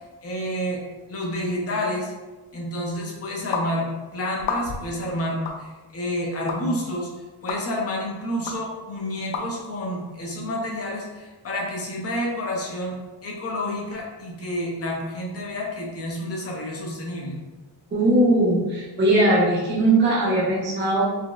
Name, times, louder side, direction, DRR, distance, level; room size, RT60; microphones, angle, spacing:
voice 1, 0.2-0.8 1.1-2.1 2.5-7.1 7.4-13.0 13.2-17.3, left 1 dB, 30° left, -2 dB, 0.5 m, -29 dB
sound 1, 3.5-3.7 4.4-4.9 5.5-5.6 6.5-6.6 7.5-7.6 8.5-8.6 9.3-9.5, left 5 dB, 85° left, 0.6 m, -28 dB
voice 2, 17.9-21.1, right 1 dB, 25° right, -6 dB, 0.6 m, -19 dB
4.0 x 2.0 x 2.3 m, 1.2 s
cardioid pair, 175°, 47 cm